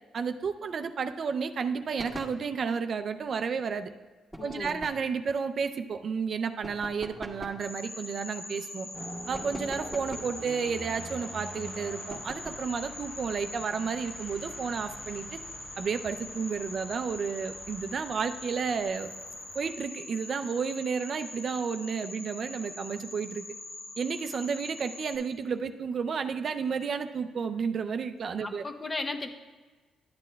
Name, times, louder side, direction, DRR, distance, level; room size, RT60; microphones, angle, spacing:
voice 1, 0.1-3.9 4.4-8.9 9.3-15.4 15.8-19.1 19.5-23.4 24.0-28.6, right 6 dB, 50° right, 9 dB, 0.4 m, -32 dB
sound 1, 2.0-2.4 4.3-5.1 6.6-7.7 9.3-10.4 12.1-12.7, equal, 5° left, 1.6 m, -43 dB
voice 2, 4.4-4.8 28.4-29.3, left 3 dB, 30° left, 6 dB, 0.8 m, -35 dB
sound 2, 7.6-25.2, left 2 dB, 70° left, 2.7 m, -43 dB
sound 3, 8.9-19.7, right 1 dB, 20° right, 0.8 m, -46 dB
12.0 x 8.3 x 2.3 m, 1.3 s
cardioid pair, 90°, 0 cm